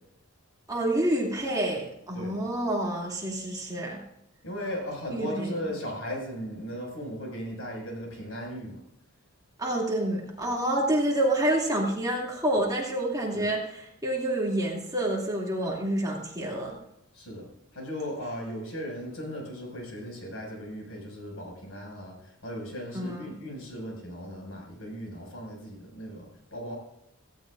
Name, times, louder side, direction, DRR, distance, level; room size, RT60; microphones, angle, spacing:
voice 1, 0.7-4.0 5.1-5.5 9.6-13.6 14.0-16.8 22.9-23.3, right 1 dB, 20° right, -3 dB, 2.6 m, -28 dB
voice 2, 4.4-8.8 13.3-13.5 17.1-26.7, equal, 75° left, 0 dB, 6.0 m, -37 dB
17.0 x 16.5 x 2.6 m, 0.79 s
head